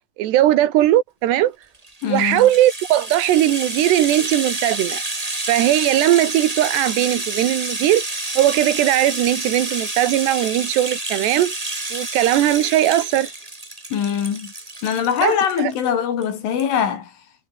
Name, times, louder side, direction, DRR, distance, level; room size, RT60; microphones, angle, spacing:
voice 1, 0.2-1.6 2.1-5.0 5.5-8.0 8.4-11.5 11.9-13.3 15.2-15.7, right 13 dB, 65° right, 3.2 m, -18 dB
Rattle (instrument), 1.7-15.9 16.2-16.3 16.6-16.7, right 2 dB, 25° right, 0.8 m, -29 dB
voice 2, 2.0-2.5 13.9-14.5 14.8-17.1, left 8 dB, 70° left, 6.3 m, -22 dB
omnidirectional pair, 5.8 m